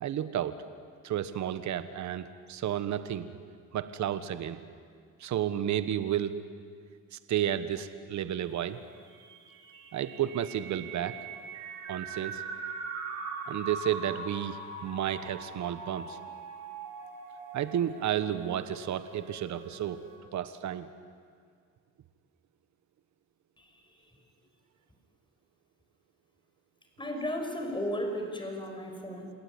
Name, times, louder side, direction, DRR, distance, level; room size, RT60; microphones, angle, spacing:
voice 1, 0.0-0.6 1.0-3.3 3.7-4.6 5.2-6.4 7.1-8.8 9.9-11.2 11.9-12.4 13.5-16.2 17.5-20.0 20.3-20.9, right 10 dB, 70° right, 12 dB, 1.3 m, -32 dB
sound 1, 9.1-20.2, right 4 dB, 90° right, 5.0 m, -42 dB
voice 2, 23.6-23.9 27.0-29.3, equal, 15° left, 4 dB, 5.8 m, -35 dB
28.0 x 18.0 x 9.9 m, 2.1 s
cardioid pair, 90°, 30 cm